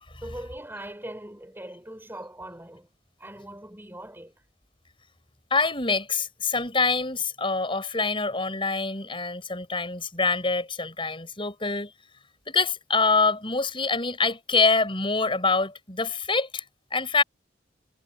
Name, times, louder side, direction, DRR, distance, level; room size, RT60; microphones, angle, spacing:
voice 1, 0.2-2.9 3.2-4.3, right 1 dB, 10° right, 6.6 m, -40 dB
voice 2, 5.5-11.9 12.5-16.6 16.9-17.2, left 4 dB, 30° left, 7.4 m, -25 dB
head